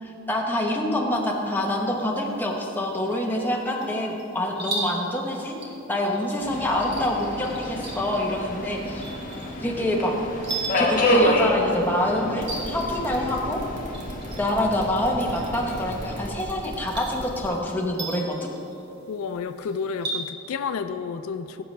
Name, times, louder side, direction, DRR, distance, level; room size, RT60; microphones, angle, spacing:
voice 1, 0.0-5.6 5.9-9.1 9.6-10.1 10.8-13.6 14.4-18.3, left 1 dB, 10° left, -1 dB, 0.9 m, -26 dB
sound 1, 1.1-20.3, right 2 dB, 50° right, 1.7 m, -39 dB
Subway metro underground, 6.4-16.3, left 1 dB, 40° left, 1.2 m, -28 dB
sound 2, 12.4-17.5, equal, 35° right, 1.9 m, -38 dB
voice 2, 19.1-21.6, left 5 dB, 75° left, 10 dB, 0.4 m, -31 dB
15.5 x 6.8 x 3.3 m, 3.0 s
head